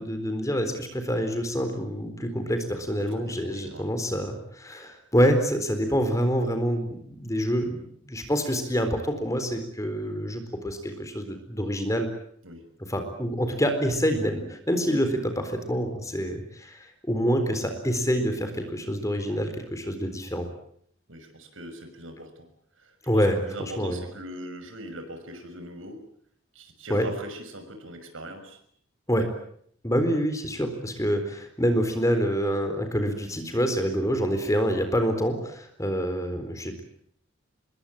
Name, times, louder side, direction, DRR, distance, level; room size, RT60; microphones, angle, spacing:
voice 1, 0.0-7.8 8.0-12.1 12.9-20.5 23.1-24.0 26.9-27.1 29.1-29.3 29.8-36.8, equal, 15° left, 8 dB, 4.1 m, -26 dB
voice 2, 3.1-4.0 12.4-12.6 21.1-22.5 22.8-26.0 26.5-28.6, right 1 dB, 75° right, 7 dB, 6.2 m, -41 dB
26.0 x 22.0 x 8.9 m, 0.65 s
head